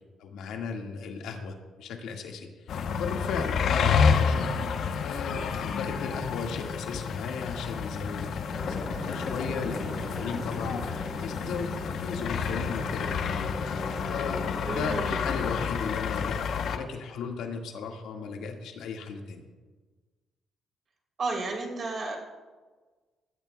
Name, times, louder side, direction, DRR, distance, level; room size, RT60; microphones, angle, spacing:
voice 1, 0.2-4.6 5.0-8.3 8.6-13.6 14.1-19.4, left 5 dB, 85° left, 2 dB, 1.9 m, -36 dB
sound 1, 2.7-16.8, left 6 dB, 70° left, 0.9 m, -29 dB
sound 2, 8.5-14.8, left 1 dB, ahead, 3.4 m, -39 dB
voice 2, 14.7-15.2 21.2-22.2, right 3 dB, 50° right, 0 dB, 3.4 m, -32 dB
20.5 x 13.5 x 2.3 m, 1.4 s
cardioid pair, 90°, 0 cm